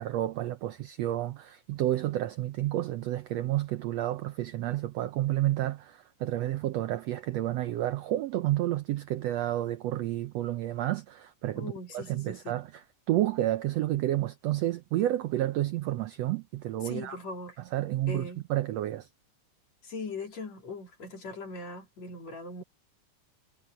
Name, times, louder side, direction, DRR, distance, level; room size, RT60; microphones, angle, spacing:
voice 1, 0.0-17.2 17.6-19.1, right 14 dB, 75° right, 1.5 m, -30 dB
voice 2, 11.5-12.6 16.8-17.6 18.1-18.4 19.8-22.6, left 3 dB, 55° left, 5.0 m, -40 dB
omnidirectional pair, 3.6 m